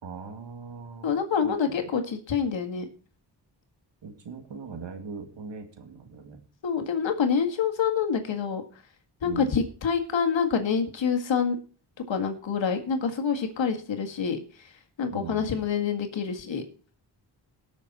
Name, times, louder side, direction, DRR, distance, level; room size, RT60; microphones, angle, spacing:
voice 1, 0.0-1.9 4.0-6.4 9.2-9.5 15.1-15.5, right 5 dB, 80° right, 6 dB, 2.3 m, -40 dB
voice 2, 1.0-2.9 6.6-8.6 9.2-11.6 12.1-14.7 15.0-16.6, left 6 dB, 85° left, 5 dB, 2.0 m, -27 dB
19.0 x 6.4 x 4.2 m, 0.39 s
cardioid pair, 70°, 44 cm